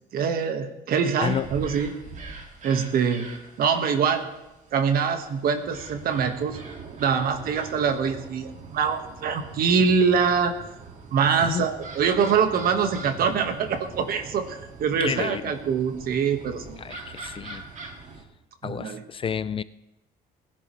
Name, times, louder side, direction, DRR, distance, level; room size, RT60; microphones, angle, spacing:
voice 1, 0.1-1.9 2.6-3.3 3.6-4.3 4.7-6.6 7.0-10.6 11.1-16.8 18.6-19.0, right 6 dB, 60° right, 7 dB, 1.6 m, -24 dB
sound 1, 1.2-18.2, right 4 dB, 45° right, 2.2 m, -42 dB
voice 2, 11.3-11.7 15.0-15.6 16.8-17.6 18.6-19.6, left 7 dB, 30° left, 16 dB, 0.4 m, -30 dB
20.0 x 11.0 x 3.2 m, 0.97 s
cardioid pair, 110°, 17 cm